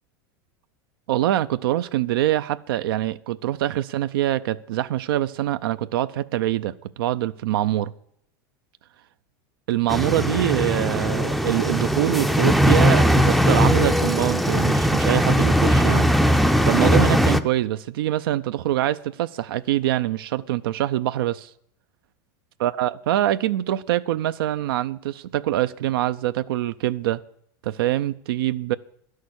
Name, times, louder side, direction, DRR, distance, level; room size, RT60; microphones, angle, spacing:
voice 1, 1.1-7.9 9.7-16.1 16.6-21.5 22.6-27.2 27.6-28.7, right 13 dB, 85° right, 0.5 m, -24 dB
sound 1, 9.9-17.4, equal, ahead, 0.4 m, -19 dB
12.0 x 6.5 x 9.6 m
supercardioid pair, 145°, 12 cm